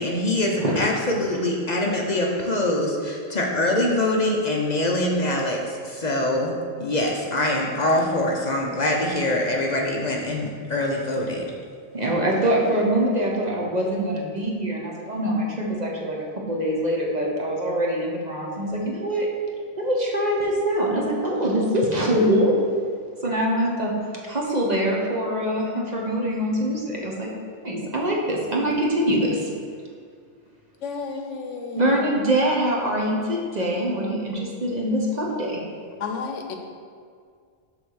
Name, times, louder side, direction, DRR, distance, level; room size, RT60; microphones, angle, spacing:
voice 1, 0.0-6.5 6.8-11.5, left 1 dB, 40° left, -1 dB, 0.7 m, -24 dB
voice 2, 11.9-19.3 19.8-22.5 23.2-23.9 24.2-27.3 27.6-29.5 31.7-35.6, right 1 dB, 40° right, -2 dB, 1.0 m, -24 dB
voice 3, 30.8-32.0 36.0-36.6, left 5 dB, 80° left, 4 dB, 1.1 m, -32 dB
7.0 x 3.5 x 6.2 m, 2.1 s
omnidirectional pair, 1.2 m